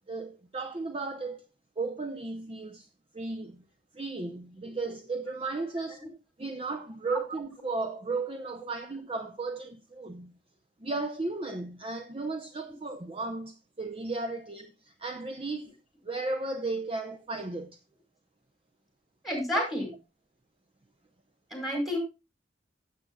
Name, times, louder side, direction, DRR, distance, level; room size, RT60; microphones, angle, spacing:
voice 1, 0.1-1.4 1.8-2.9 3.1-3.6 3.9-6.0 6.4-10.4 10.8-15.7 16.0-17.8, right 3 dB, 30° right, 0.7 m, -35 dB
voice 2, 19.2-19.9 21.5-22.0, equal, ahead, 5.1 m, -30 dB
15.5 x 8.5 x 2.3 m
head